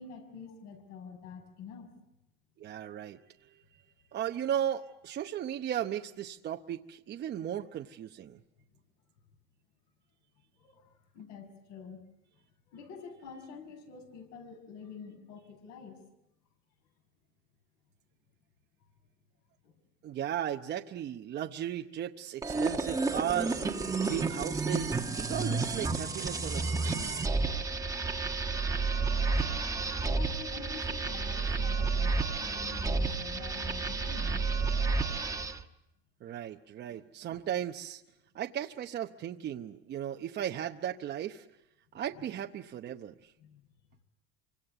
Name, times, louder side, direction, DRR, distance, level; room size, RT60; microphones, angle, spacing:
voice 1, 0.0-1.9 8.7-8.8 10.6-12.0 12.7-16.0 18.8-18.9 19.6-19.7 29.8-34.5 43.4-43.7, left 6 dB, 65° left, 6 dB, 6.1 m, -47 dB
voice 2, 2.6-3.2 4.1-8.4 20.0-23.6 24.0-27.2 36.2-38.0 38.3-41.5 41.9-43.3, right 10 dB, 35° right, 3 dB, 0.9 m, -36 dB
sound 1, 22.4-35.6, right 4 dB, 10° right, 1.2 m, -31 dB
26.5 x 25.0 x 8.0 m, 0.87 s
supercardioid pair, 135°, 30 cm